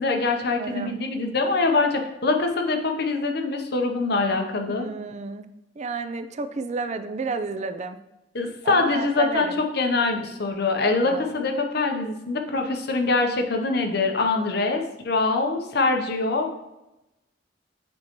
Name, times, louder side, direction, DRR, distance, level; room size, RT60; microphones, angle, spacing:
voice 1, 0.0-4.9 8.3-16.6, left 3 dB, 65° left, 4 dB, 0.8 m, -24 dB
voice 2, 0.6-1.0 4.7-5.4 5.8-8.0 8.6-9.6 10.9-11.3, right 4 dB, 40° right, 9 dB, 0.4 m, -31 dB
7.3 x 4.4 x 3.0 m, 0.93 s
head